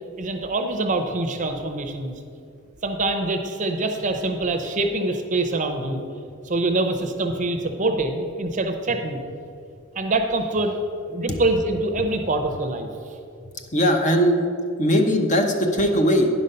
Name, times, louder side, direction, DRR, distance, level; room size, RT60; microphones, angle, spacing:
voice 1, 0.2-2.2 2.8-6.0 6.4-9.2 9.9-12.9, right 2 dB, 35° right, 5 dB, 0.7 m, -25 dB
voice 2, 13.7-14.5 14.8-16.3, equal, 35° left, 4 dB, 0.9 m, -19 dB
10.0 x 5.3 x 5.5 m, 2.4 s
head